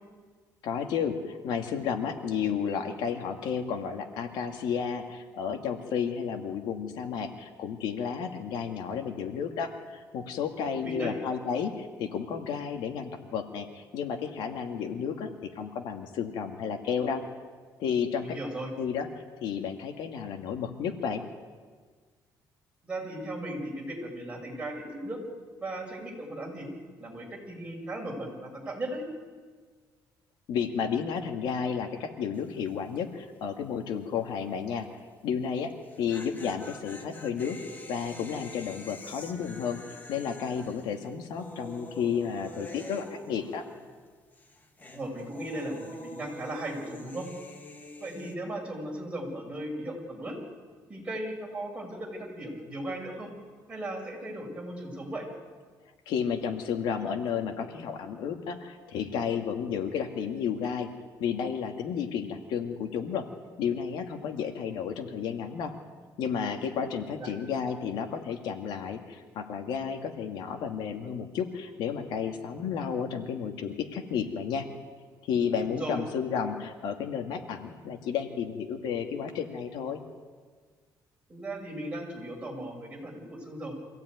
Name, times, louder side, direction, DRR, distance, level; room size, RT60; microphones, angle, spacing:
voice 1, 0.6-15.3 15.6-17.2 17.8-18.4 18.8-19.1 19.4-21.2 30.5-34.9 35.2-35.7 36.0-37.6 37.9-39.8 40.1-43.6 56.1-60.9 61.2-63.3 63.6-65.7 66.2-74.7 75.3-80.0, left 7 dB, 90° left, 5 dB, 2.1 m, -32 dB
voice 2, 10.7-11.1 18.2-18.7 22.8-25.2 25.6-26.7 27.0-29.0 44.9-47.3 48.0-50.3 50.9-53.3 53.7-55.3 67.2-67.3 75.6-76.0 81.3-83.7, right 1 dB, 15° right, -1 dB, 6.1 m, -37 dB
sound 1, 32.3-32.7 32.9-33.0 35.7-44.1 44.3-48.3, left 1 dB, 25° left, 2.2 m, -46 dB
25.0 x 16.5 x 9.4 m, 1.5 s
cardioid pair, 150°, 7 cm